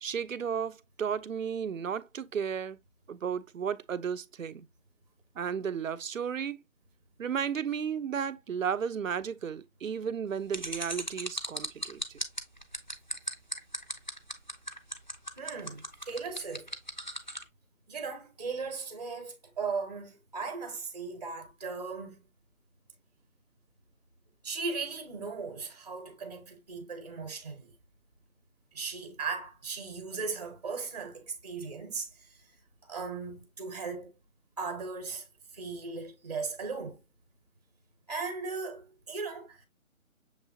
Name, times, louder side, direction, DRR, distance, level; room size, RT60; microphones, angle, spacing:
voice 1, 0.0-2.8 3.1-4.7 5.4-6.6 7.2-12.0, right 7 dB, 70° right, 0.6 m, -33 dB
sound 1, 10.5-17.4, equal, 35° left, 0.4 m, -36 dB
voice 2, 15.4-16.7 17.9-22.3 24.4-27.7 28.7-32.4 32.8-34.1 34.6-35.3 35.5-37.0 38.1-39.7, right 4 dB, 30° right, 0.8 m, -37 dB
6.6 x 3.0 x 2.7 m
figure-of-eight pair, 165°, 41 cm